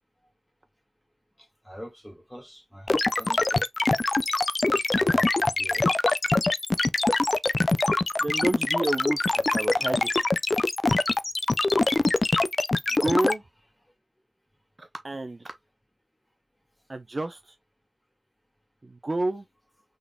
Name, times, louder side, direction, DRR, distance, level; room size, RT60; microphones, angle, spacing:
voice 1, 1.4-3.7 4.7-5.9, equal, 10° left, 2.0 m, -44 dB
sound 1, 2.9-13.3, left 2 dB, 45° left, 0.3 m, -23 dB
voice 2, 8.2-10.3 12.9-13.4 14.8-15.5 16.9-17.5 18.8-19.4, right 2 dB, 40° right, 0.6 m, -30 dB
3.8 x 3.6 x 2.2 m
cardioid pair, 50°, 0 cm